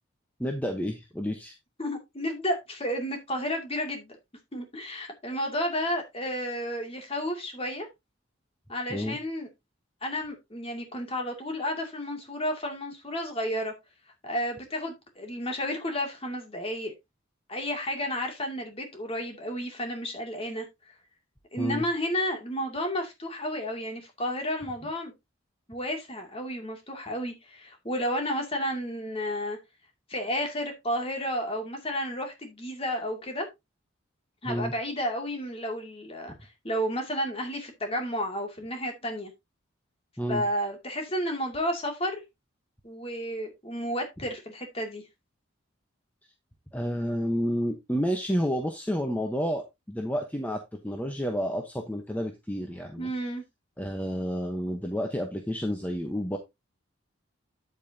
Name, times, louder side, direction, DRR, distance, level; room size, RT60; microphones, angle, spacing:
voice 1, 0.4-1.5 8.9-9.2 21.6-21.9 34.4-34.7 40.2-40.4 46.7-53.1 53.8-56.4, equal, 10° left, 1.0 m, -30 dB
voice 2, 1.8-4.1 4.5-7.9 8.7-9.5 10.0-13.7 14.2-16.9 17.5-20.7 21.5-25.1 25.7-29.6 30.1-33.5 34.4-39.3 40.3-42.2 42.8-45.0 53.0-53.4, equal, 30° left, 2.4 m, -32 dB
9.1 x 8.3 x 2.8 m
head